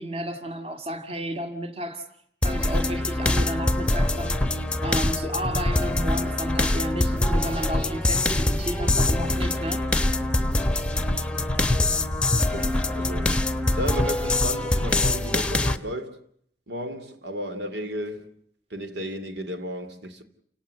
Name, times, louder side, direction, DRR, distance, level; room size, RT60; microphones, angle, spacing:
voice 1, 0.0-2.0 2.4-4.4 4.8-9.9, equal, 35° right, 2.2 m, -32 dB
sound 1, 2.4-15.8, left 2 dB, 5° left, 1.0 m, -24 dB
voice 2, 11.7-12.0 12.3-13.4 13.7-16.2 16.7-18.3 18.7-20.2, equal, 85° right, 2.9 m, -34 dB
29.5 x 17.0 x 7.8 m
head